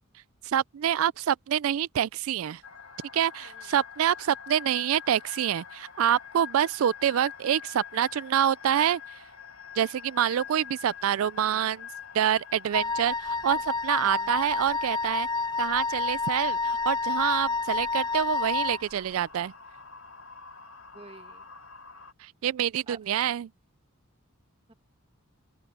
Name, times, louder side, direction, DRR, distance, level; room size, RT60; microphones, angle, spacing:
voice 1, 0.4-2.6 3.1-9.0 9.8-11.9 12.1-15.3 15.6-19.5 22.2-23.5, right 10 dB, 75° right, 0.3 m, -26 dB
sound 1, 2.6-22.1, left 7 dB, 70° left, 3.2 m, -46 dB
Wind instrument woodwind instrument, 12.7-18.8, left 4 dB, 20° left, 0.4 m, -29 dB
voice 2, 14.0-14.3 20.9-21.5 22.9-23.0 24.7-24.8, right 3 dB, 25° right, 1.5 m, -49 dB
open air
head